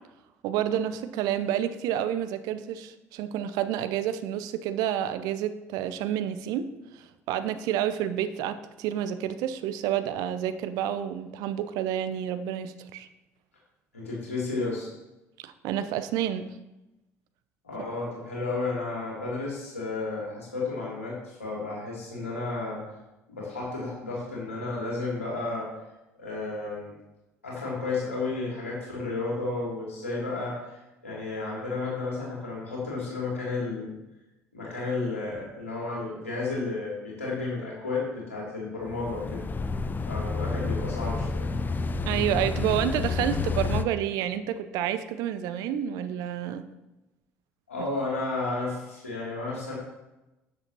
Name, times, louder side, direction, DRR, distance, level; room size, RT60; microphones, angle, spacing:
voice 1, 0.4-6.7 6.9-13.1 15.4-16.5 42.0-46.6, right 10 dB, 60° right, 11 dB, 0.7 m, -29 dB
voice 2, 13.9-14.9 17.6-22.8 23.3-25.7 26.2-26.9 27.4-30.8 31.0-33.9 34.5-39.4 40.1-41.5 47.7-49.7, left 3 dB, 80° left, -5 dB, 2.7 m, -32 dB
sound 1, 38.8-43.8, left 4 dB, 25° left, 0.6 m, -29 dB
12.5 x 7.8 x 2.9 m, 0.98 s
figure-of-eight pair, 55°, 7 cm